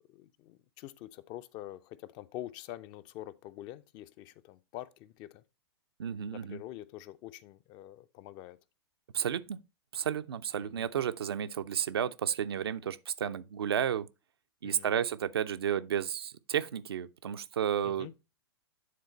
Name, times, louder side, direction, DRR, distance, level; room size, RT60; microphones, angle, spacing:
voice 1, 0.1-5.4 6.3-8.6 10.6-10.9 14.6-15.0 17.8-18.1, left 14 dB, 30° left, 0.5 m, -46 dB
voice 2, 6.0-6.6 9.1-9.6 9.9-14.1 14.6-18.1, right 9 dB, 65° right, 0.6 m, -32 dB
9.5 x 3.8 x 4.1 m
figure-of-eight pair, 105°, 14 cm